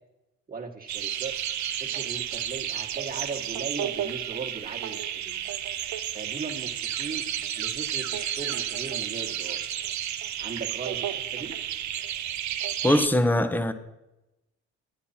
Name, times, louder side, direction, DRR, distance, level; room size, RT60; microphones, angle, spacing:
voice 1, 0.5-1.3 1.8-5.4 6.1-7.2 7.6-9.7 10.4-11.5, right 4 dB, 30° right, 1.5 m, -38 dB
sound 1, 0.9-13.1, right 10 dB, 65° right, 0.7 m, -32 dB
voice 2, 12.8-13.7, left 1 dB, 5° left, 0.8 m, -21 dB
10.5 x 9.6 x 4.3 m
cardioid pair, 90°, 30 cm